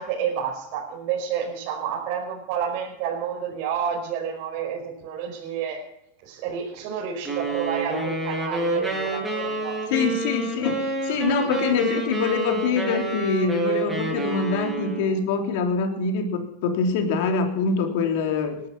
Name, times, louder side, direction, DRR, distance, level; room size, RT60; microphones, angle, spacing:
voice 1, 0.0-5.8 6.2-10.1, right 8 dB, 55° right, -2 dB, 5.0 m, -30 dB
sound 1, 7.2-15.2, right 2 dB, 5° right, 6.4 m, -28 dB
voice 2, 9.9-18.6, left 5 dB, 60° left, 4 dB, 3.3 m, -25 dB
19.5 x 11.5 x 6.0 m, 0.82 s
supercardioid pair, 140°, 0 cm